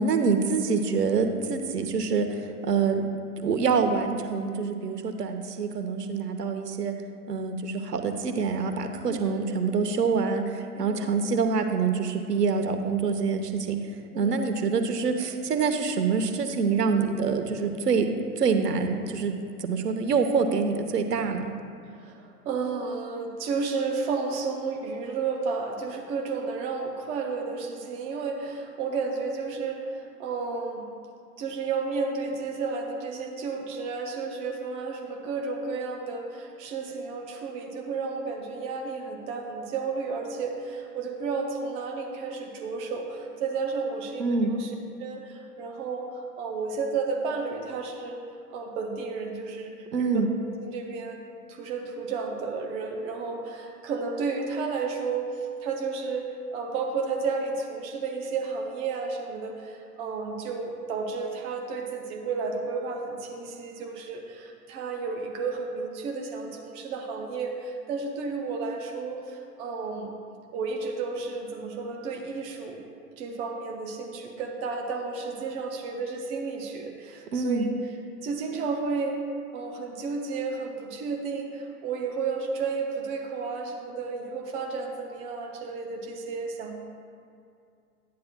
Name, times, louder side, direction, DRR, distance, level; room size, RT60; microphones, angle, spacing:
voice 1, 0.0-3.0 3.4-6.9 7.3-18.1 18.4-21.5 44.2-44.5 49.9-50.3 77.3-77.7, right 5 dB, 90° right, 6 dB, 1.0 m, -26 dB
voice 2, 9.1-9.6 10.8-11.1 14.1-14.5 21.9-30.8 31.4-44.7 45.0-48.2 48.5-50.2 50.6-51.2 51.5-70.1 70.5-72.8 73.2-77.7 78.2-79.2 79.5-86.7, right 4 dB, 15° right, 3 dB, 0.4 m, -32 dB
11.5 x 9.4 x 2.2 m, 2.4 s
hypercardioid pair, 120°, 47 cm